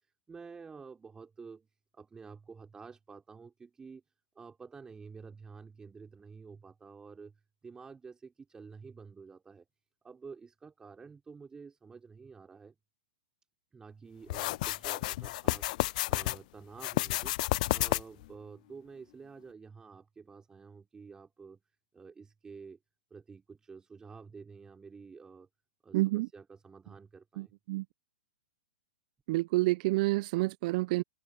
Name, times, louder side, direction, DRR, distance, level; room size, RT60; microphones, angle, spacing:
voice 1, 0.3-1.7 1.9-4.0 4.4-9.7 10.0-12.7 13.7-21.6 21.9-22.8 23.1-25.5 25.8-27.5, right 5 dB, 15° right, 4.0 m, -50 dB
sound 1, 14.3-16.4 16.8-18.3, left 19 dB, 50° left, 0.3 m, -31 dB
voice 2, 25.9-26.3 27.4-27.8 29.3-31.0, right 20 dB, 45° right, 0.8 m, -29 dB
hypercardioid pair, 115°, 5 cm